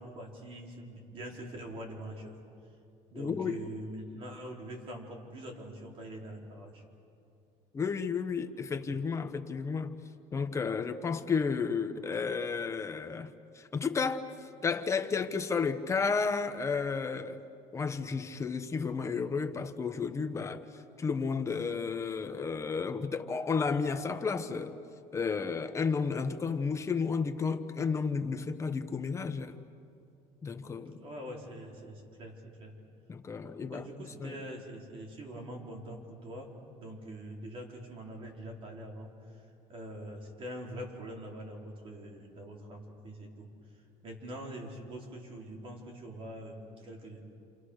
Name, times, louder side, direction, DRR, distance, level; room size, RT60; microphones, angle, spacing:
voice 1, 0.0-2.3 3.1-6.8 31.0-32.7 33.6-36.5 36.8-39.1 39.7-43.5 44.0-47.2, right 1 dB, 40° right, 4.6 m, -44 dB
voice 2, 3.1-3.6 7.7-9.9 10.3-14.2 14.6-17.4 17.7-20.6 21.0-24.8 25.1-29.6 30.4-31.0 33.1-33.9 34.2-34.4, left 5 dB, 20° left, 1.3 m, -32 dB
29.0 x 28.0 x 6.6 m
cardioid pair, 150°, 14 cm